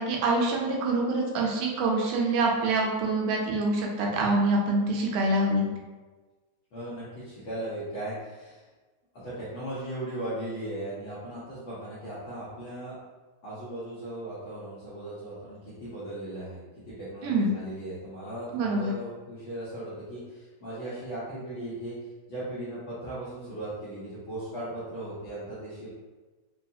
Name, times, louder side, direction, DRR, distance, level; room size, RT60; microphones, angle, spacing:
voice 1, 0.0-5.6 17.2-17.5 18.5-18.9, right 2 dB, 85° right, -1 dB, 2.1 m, -25 dB
voice 2, 6.7-8.6 9.1-13.0 13.4-22.0 22.3-25.9, right 1 dB, 65° left, -11 dB, 1.3 m, -37 dB
4.8 x 2.3 x 2.7 m, 1.3 s
omnidirectional pair, 3.3 m